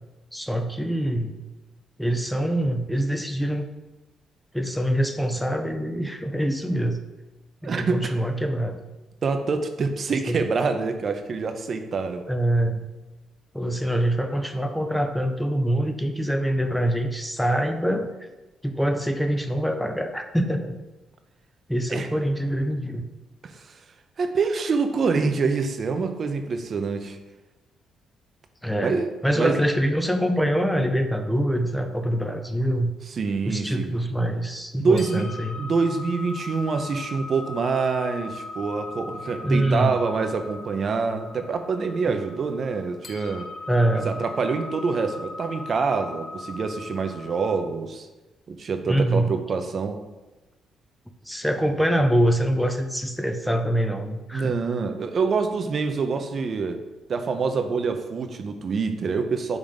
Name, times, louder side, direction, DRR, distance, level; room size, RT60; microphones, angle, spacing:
voice 1, 0.3-1.4 2.0-3.7 4.5-7.0 7.6-8.8 10.3-10.4 12.3-12.9 13.5-18.1 18.6-20.8 21.7-23.0 28.6-32.9 33.4-35.6 39.4-40.0 42.1-42.2 43.7-44.2 48.9-49.3 51.3-54.6, right 1 dB, 5° left, 6 dB, 0.5 m, -24 dB
voice 2, 7.6-8.1 9.2-12.2 21.9-22.1 23.5-23.8 24.2-27.2 28.8-29.1 29.3-29.6 33.1-33.9 34.8-35.2 35.6-43.5 43.9-48.1 48.5-50.0 54.3-56.8 57.1-59.6, right 4 dB, 50° right, 7 dB, 0.6 m, -26 dB
sound 1, 35.0-47.6, left 2 dB, 45° left, 0.7 m, -39 dB
5.2 x 3.5 x 5.4 m, 1.1 s
cardioid pair, 90°, 0 cm